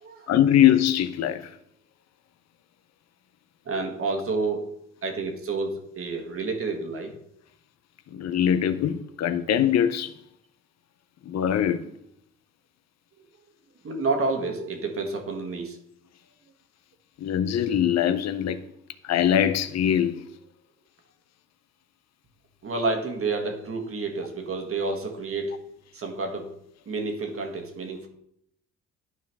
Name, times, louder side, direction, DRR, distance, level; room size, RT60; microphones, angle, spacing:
voice 1, 0.3-1.5 8.1-10.1 11.3-11.8 17.2-18.6 19.0-20.3, left 10 dB, 60° left, 0.6 m, -22 dB
voice 2, 3.6-4.7 5.0-7.2 13.8-15.8 22.6-25.6 25.9-26.6 26.8-28.1, right 3 dB, 45° right, 1.6 m, -29 dB
11.0 x 4.6 x 3.5 m
cardioid pair, 90°, 30 cm